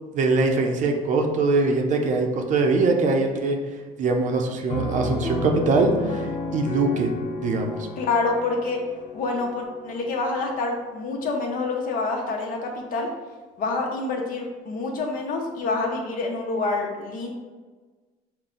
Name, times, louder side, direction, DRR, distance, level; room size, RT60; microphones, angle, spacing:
voice 1, 0.1-3.6 4.0-7.1 7.4-7.8, right 3 dB, 50° right, 3 dB, 0.6 m, -22 dB
Piano, 4.7-10.2, left 2 dB, 80° left, 1.0 m, -32 dB
voice 2, 8.0-8.8 9.1-13.1 13.6-17.3, left 3 dB, 55° left, 1 dB, 1.0 m, -27 dB
5.7 x 2.2 x 3.8 m, 1.3 s
cardioid pair, 120°, 17 cm